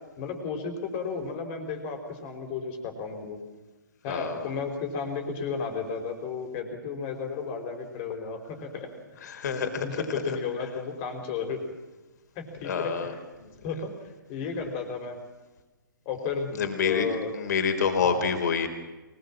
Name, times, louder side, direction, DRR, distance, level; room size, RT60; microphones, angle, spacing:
voice 1, 0.2-3.4 4.0-8.9 9.2-9.3 9.8-11.6 12.3-13.2 13.6-15.2 16.0-17.3 18.0-18.2, left 5 dB, 30° left, 4 dB, 4.8 m, -33 dB
voice 2, 4.1-4.5 9.2-10.4 12.6-13.1 13.4-13.5 16.5-18.7, left 6 dB, 55° left, 6 dB, 4.0 m, -28 dB
24.0 x 21.0 x 7.5 m, 1.1 s
figure-of-eight pair, 130°, 11 cm